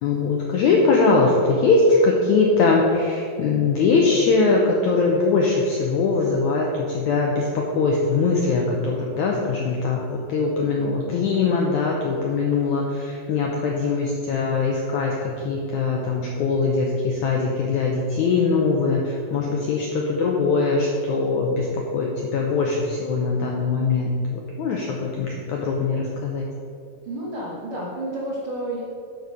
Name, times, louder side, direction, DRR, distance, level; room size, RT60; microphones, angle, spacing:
voice 1, 0.0-26.5, left 4 dB, 80° left, -1 dB, 1.7 m, -21 dB
voice 2, 27.0-28.8, right 1 dB, 70° right, -5 dB, 1.2 m, -30 dB
9.3 x 5.2 x 6.4 m, 2.5 s
omnidirectional pair, 4.4 m